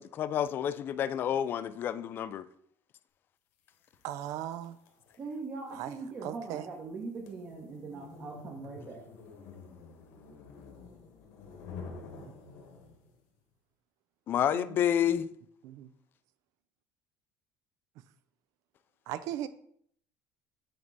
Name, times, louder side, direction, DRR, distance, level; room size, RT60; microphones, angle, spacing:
voice 1, 0.0-2.5 14.3-15.3, left 9 dB, 35° left, 0.3 m, -29 dB
sound 1, 3.8-13.2, left 4 dB, 75° left, 1.4 m, -49 dB
voice 2, 4.0-4.8 5.7-5.9 6.2-6.7 12.1-12.3 14.5-14.8 15.1-15.2 15.6-15.9 19.1-19.5, right 11 dB, 65° right, 0.5 m, -38 dB
voice 3, 5.2-9.0, right 4 dB, 35° right, 0.9 m, -41 dB
7.8 x 3.4 x 4.0 m
cardioid pair, 150°, 6 cm